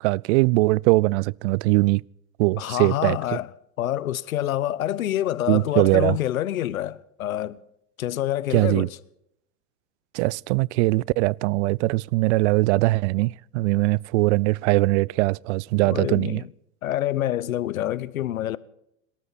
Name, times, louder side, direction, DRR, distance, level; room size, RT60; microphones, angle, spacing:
voice 1, 0.0-2.0 2.4-3.2 5.5-6.2 8.5-8.9 10.1-16.4, right 22 dB, 60° right, 0.5 m, -21 dB
voice 2, 2.6-3.5 3.8-7.6 8.0-9.0 15.8-16.5 16.8-18.6, left 13 dB, 90° left, 0.9 m, -27 dB
26.5 x 13.0 x 4.2 m
hypercardioid pair, 110°, 40 cm